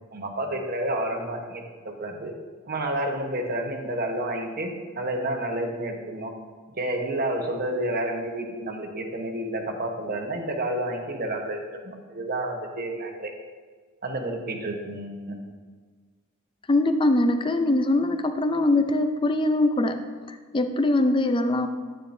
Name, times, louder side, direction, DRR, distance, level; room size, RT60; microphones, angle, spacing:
voice 1, 0.1-2.3 2.7-6.3 6.8-13.3 14.0-15.4, right 1 dB, 45° right, 3 dB, 1.1 m, -30 dB
voice 2, 16.7-20.1 20.5-21.7, left 2 dB, 25° left, 8 dB, 0.5 m, -22 dB
10.0 x 9.0 x 2.6 m, 1.5 s
head